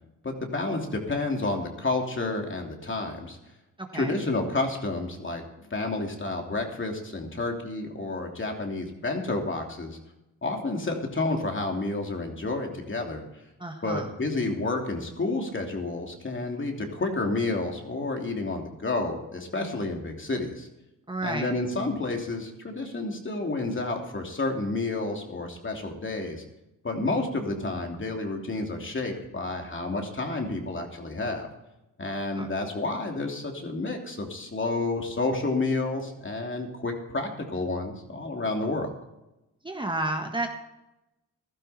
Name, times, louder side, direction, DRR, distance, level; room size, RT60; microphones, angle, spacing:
voice 1, 0.2-3.4 3.9-10.0 10.4-13.2 13.8-20.7 21.2-26.4 26.8-31.5 32.0-38.9, left 2 dB, 35° left, 2 dB, 3.0 m, -30 dB
voice 2, 3.8-4.2 13.6-14.1 21.1-21.5 32.3-32.5 39.6-40.5, right 2 dB, 15° right, 4 dB, 1.5 m, -31 dB
15.5 x 12.5 x 4.4 m, 0.94 s
cardioid pair, 65°, 34 cm